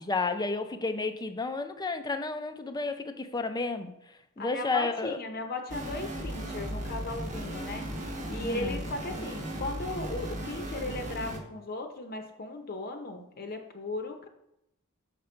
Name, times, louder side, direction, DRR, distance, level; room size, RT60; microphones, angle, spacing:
voice 1, 0.1-3.9 4.4-5.2 8.4-8.8, left 3 dB, 20° left, 8 dB, 0.5 m, -31 dB
voice 2, 4.4-14.3, left 2 dB, 45° left, 4 dB, 0.8 m, -37 dB
sound 1, 5.7-11.4, equal, 35° right, 1.1 m, -36 dB
6.7 x 5.2 x 4.4 m, 0.84 s
head